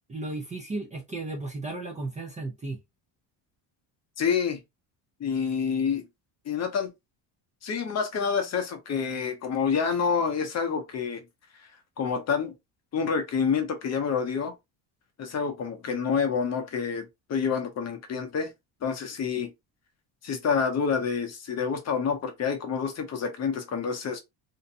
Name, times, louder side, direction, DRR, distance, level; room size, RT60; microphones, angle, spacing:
voice 1, 0.1-2.8, right 2 dB, 15° right, 0.4 m, -34 dB
voice 2, 4.2-4.6 5.2-6.1 6.5-6.9 7.6-11.2 12.0-12.5 12.9-14.5 15.2-18.5 18.8-19.5 20.2-24.2, left 6 dB, 40° left, 0.7 m, -28 dB
2.6 x 2.2 x 2.6 m
cardioid pair, 125°, 42 cm